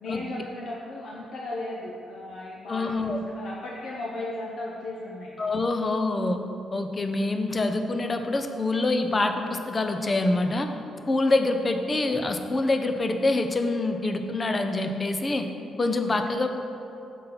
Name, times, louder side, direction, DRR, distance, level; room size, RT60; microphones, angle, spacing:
voice 1, 0.0-5.3, left 2 dB, 70° left, -4 dB, 0.7 m, -36 dB
voice 2, 2.7-3.2 5.4-6.4 6.7-10.7 11.1-15.5 15.8-16.5, left 2 dB, 30° left, 6 dB, 0.5 m, -25 dB
5.5 x 3.9 x 5.7 m, 2.7 s
cardioid pair, 95°, 0 cm